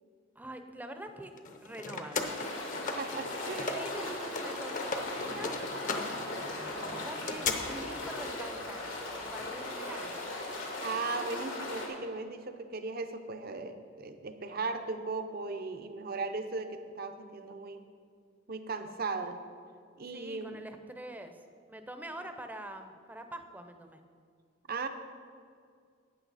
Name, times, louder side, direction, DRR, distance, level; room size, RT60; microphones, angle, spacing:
voice 1, 0.4-1.3 1.6-2.3 3.4-5.6 6.1-10.3 20.1-21.4 21.7-24.0, right 1 dB, 10° right, 7 dB, 0.6 m, -45 dB
sound 1, 1.4-4.0 4.2-7.5, left 4 dB, 45° left, 0.8 m, -37 dB
sound 2, 2.2-11.9, left 2 dB, 90° left, 2.5 m, -38 dB
voice 2, 2.9-3.7 10.8-17.9 18.5-19.4 20.0-20.7 24.7-24.9, right 3 dB, 50° right, 8 dB, 0.7 m, -37 dB
12.5 x 8.8 x 4.1 m, 2.2 s
head